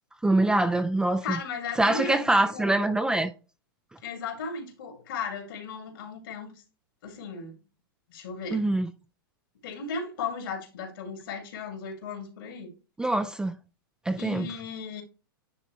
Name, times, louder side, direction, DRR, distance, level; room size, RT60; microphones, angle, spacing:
voice 1, 0.2-1.2 1.8-3.3 8.5-8.9 13.0-13.6 14.1-14.5, right 2 dB, 5° right, 0.4 m, -24 dB
voice 2, 1.2-2.8 4.0-6.5 7.0-7.6 8.1-8.7 9.6-12.7 14.2-15.0, left 5 dB, 70° left, 2.6 m, -36 dB
9.9 x 3.7 x 3.1 m
hypercardioid pair, 125°, 12 cm